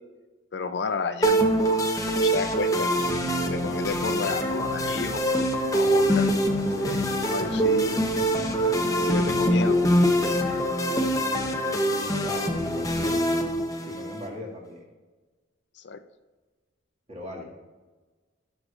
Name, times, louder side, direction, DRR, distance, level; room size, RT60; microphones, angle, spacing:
voice 1, 0.5-2.9 3.4-6.3 6.8-8.0 8.8-9.8 15.8-16.0, left 4 dB, 60° left, 10 dB, 0.4 m, -32 dB
sound 1, 1.2-14.3, equal, 15° left, 0.7 m, -24 dB
sound 2, 2.8-11.3, right 1 dB, 85° right, 2.9 m, -38 dB
voice 2, 11.1-13.2 13.9-14.9 17.1-17.4, left 1 dB, 35° right, -3 dB, 2.0 m, -40 dB
17.0 x 6.6 x 2.5 m, 1.3 s
head